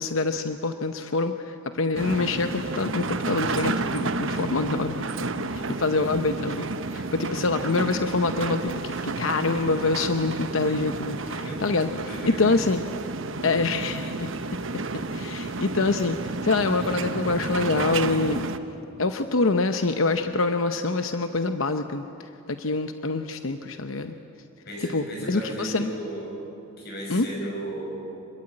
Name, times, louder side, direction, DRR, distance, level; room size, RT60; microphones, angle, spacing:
voice 1, 0.0-11.9 12.2-12.8 13.4-14.3 15.1-18.5 19.0-24.1 24.9-25.9 27.1-27.3, left 3 dB, 70° left, 8 dB, 0.9 m, -26 dB
sound 1, 1.9-18.6, right 3 dB, 65° right, 1.1 m, -31 dB
voice 2, 12.1-12.4 24.7-26.4 26.8-28.0, right 1 dB, 50° left, -1 dB, 7.5 m, -34 dB
26.5 x 22.0 x 8.8 m, 2.9 s
head